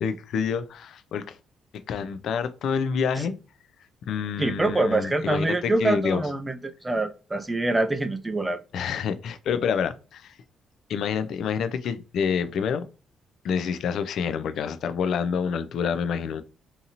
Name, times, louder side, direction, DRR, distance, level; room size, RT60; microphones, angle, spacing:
voice 1, 0.0-1.4 1.9-3.4 4.1-6.2 8.7-10.4 10.9-12.8 13.4-16.4, left 6 dB, 70° left, 0.3 m, -27 dB
voice 2, 4.4-8.6, right 2 dB, 15° right, 0.3 m, -25 dB
2.7 x 2.7 x 2.4 m
cardioid pair, 90°, 0 cm